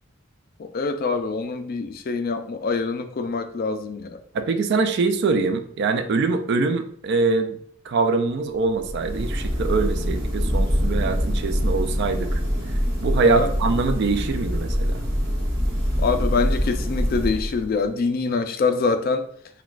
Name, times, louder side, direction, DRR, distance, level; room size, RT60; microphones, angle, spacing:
voice 1, 0.6-4.2 13.2-13.5 16.0-19.2, left 4 dB, 45° left, 8 dB, 0.3 m, -25 dB
voice 2, 4.3-7.6 7.9-12.4 13.0-15.0, right 4 dB, 55° right, 9 dB, 0.4 m, -23 dB
sound 1, 8.7-17.9, equal, 25° right, 1.2 m, -24 dB
6.0 x 2.2 x 2.4 m, 0.62 s
head